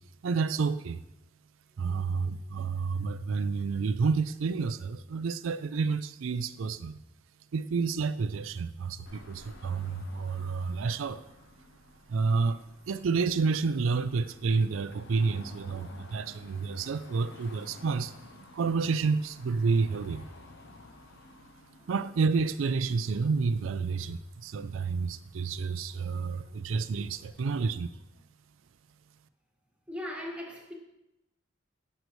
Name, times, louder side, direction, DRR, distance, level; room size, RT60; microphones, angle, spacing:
voice 1, 0.2-1.0 1.8-7.0 7.5-11.2 12.1-18.1 18.5-20.3 21.9-27.9, right 4 dB, 80° right, 0.4 m, -29 dB
voice 2, 2.3-2.7 12.5-12.7 21.8-21.9 26.1-26.6 27.1-27.5 29.9-30.7, left 1 dB, 5° right, 1.6 m, -43 dB
Car passing by / Traffic noise roadway noise / Engine, 9.1-27.7, left 2 dB, 65° left, 1.0 m, -53 dB
18.0 x 6.7 x 3.1 m
head